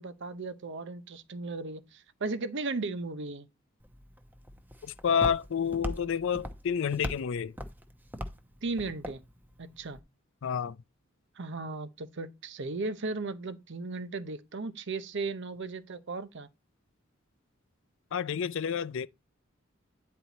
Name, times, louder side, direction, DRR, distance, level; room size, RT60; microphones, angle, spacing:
voice 1, 0.0-3.5 8.6-9.2 9.6-10.0 11.4-16.5, right 3 dB, 60° right, 0.7 m, -36 dB
Walk footsteps, 3.8-10.0, equal, 10° right, 0.8 m, -41 dB
voice 2, 4.8-7.5 10.4-10.8 18.1-19.1, left 7 dB, 65° left, 0.4 m, -29 dB
9.6 x 4.3 x 4.1 m
head